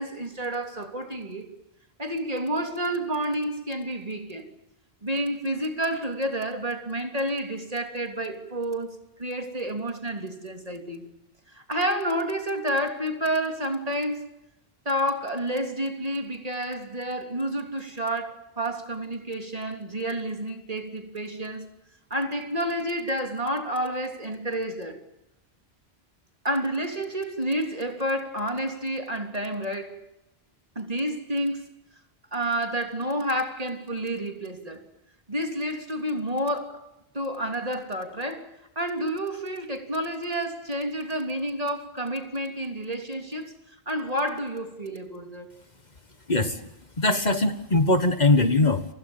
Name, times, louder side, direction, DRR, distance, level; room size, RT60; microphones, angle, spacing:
voice 1, 0.0-1.5 2.0-4.5 5.0-11.0 11.5-14.4 14.8-21.6 22.1-25.0 26.4-30.0 30.7-31.7 32.3-34.8 35.3-36.9 37.1-43.6 43.9-45.5, right 1 dB, 35° right, 3.3 m, -30 dB
voice 2, 46.3-46.7 47.0-48.9, left 2 dB, 45° left, 1.7 m, -21 dB
30.0 x 25.0 x 7.3 m
omnidirectional pair, 1.1 m